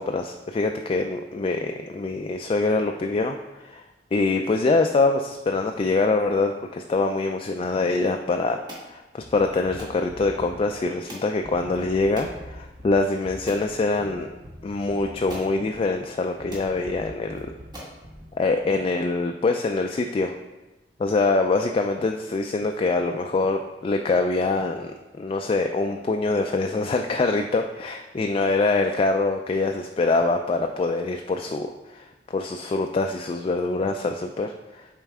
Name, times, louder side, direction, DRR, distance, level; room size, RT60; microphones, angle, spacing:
voice 1, 0.0-3.8 4.1-8.6 8.9-14.3 14.6-17.5 18.4-20.4 21.0-34.9, left 3 dB, 30° left, 4 dB, 0.3 m, -24 dB
sound 1, 8.7-8.9 9.8-10.0 11.1-11.3 12.2-12.4 12.9-13.0 13.5-13.7 14.8-14.9 15.3-15.5 16.2-16.3 16.5-16.7 17.3-17.4 17.7-18.0, equal, 25° right, 1.7 m, -40 dB
sound 2, 9.2-18.8, equal, 50° right, 1.2 m, -44 dB
7.3 x 4.5 x 3.5 m, 1.1 s
head